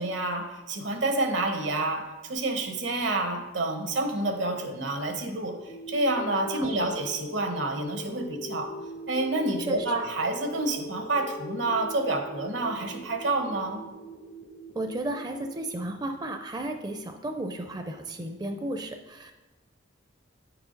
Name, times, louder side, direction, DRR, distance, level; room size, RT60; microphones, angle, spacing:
voice 1, 0.0-8.7 9.1-13.8, right 2 dB, 80° right, 5 dB, 1.2 m, -28 dB
sound 1, 5.7-15.7, equal, 75° left, 1.1 m, -41 dB
voice 2, 6.5-6.9 9.6-9.8 14.8-19.3, right 1 dB, 20° right, 5 dB, 0.4 m, -34 dB
9.2 x 4.7 x 5.2 m, 1.1 s
head